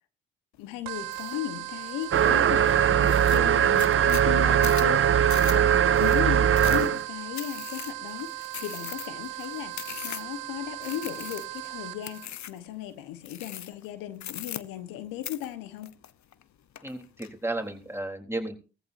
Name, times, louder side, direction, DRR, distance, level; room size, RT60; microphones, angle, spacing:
voice 1, 0.6-9.8 10.0-15.9, left 12 dB, 85° left, 1.3 m, -36 dB
sound 1, 0.9-12.3, right 17 dB, 85° right, 0.7 m, -38 dB
sound 2, 1.1-1.4 1.8-2.3 2.7-2.8 3.0-10.4 10.8-11.7 12.0-12.7 13.2-13.9 14.2-15.0 15.2-16.4 16.8-17.3, left 10 dB, 60° left, 1.0 m, -40 dB
sound 3, 2.1-7.0, right 9 dB, 40° right, 0.7 m, -21 dB
voice 2, 16.8-18.5, right 2 dB, 5° right, 3.6 m, -33 dB
18.0 x 14.5 x 2.7 m
hypercardioid pair, 50°, 33 cm